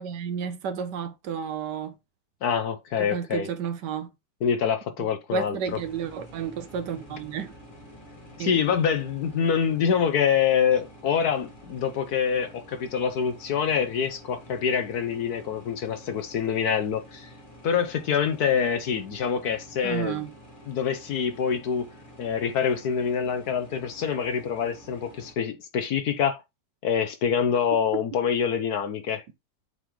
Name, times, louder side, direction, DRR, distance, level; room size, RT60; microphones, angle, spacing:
voice 1, 0.0-1.9 3.0-4.1 5.0-7.5 8.4-8.6 19.8-20.3, right 7 dB, 70° right, 1.3 m, -32 dB
voice 2, 2.4-3.5 4.4-5.8 8.4-17.3 17.6-20.2 20.7-21.9 22.2-26.4 26.8-29.2, left 7 dB, 65° left, 1.2 m, -26 dB
sound 1, 5.6-25.3, equal, 30° left, 1.7 m, -49 dB
8.0 x 3.9 x 3.1 m
omnidirectional pair, 2.0 m